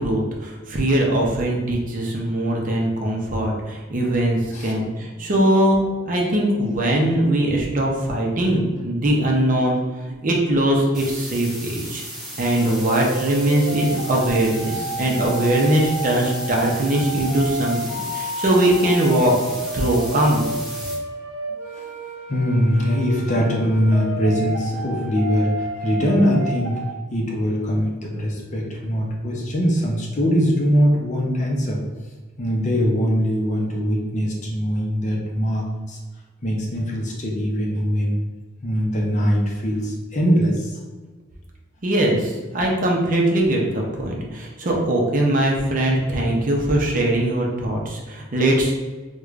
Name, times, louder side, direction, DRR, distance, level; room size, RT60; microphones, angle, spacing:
voice 1, 0.0-9.8 10.1-12.0 12.4-19.3 19.7-20.5 41.8-48.7, right 1 dB, 40° right, -1 dB, 0.6 m, -21 dB
sound 1, 10.9-20.9, right 1 dB, 5° right, 0.9 m, -36 dB
sound 2, 12.5-26.9, right 1 dB, 80° right, 0.7 m, -31 dB
voice 2, 22.3-26.8 27.1-31.8 32.4-36.0 36.4-38.2 38.6-40.8, equal, 35° left, -1 dB, 0.6 m, -22 dB
4.7 x 2.2 x 2.4 m, 1.3 s
head